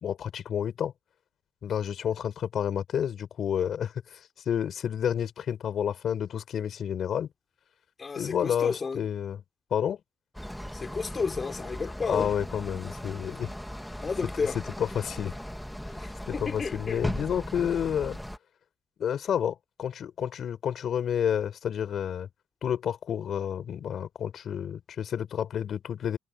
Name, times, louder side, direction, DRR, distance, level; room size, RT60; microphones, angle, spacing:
voice 1, 0.0-0.9 1.6-4.2 4.5-7.3 8.2-9.4 9.7-10.0 12.1-13.5 14.8-15.3 16.3-18.2 19.0-22.3 22.6-26.2, left 9 dB, 60° left, 4.2 m, -30 dB
voice 2, 8.0-9.1 10.7-12.3 14.0-14.6 16.0-17.0, left 5 dB, 35° left, 3.7 m, -32 dB
sound 1, 10.3-18.4, equal, 5° left, 2.2 m, -38 dB
supercardioid pair, 80°, 0 cm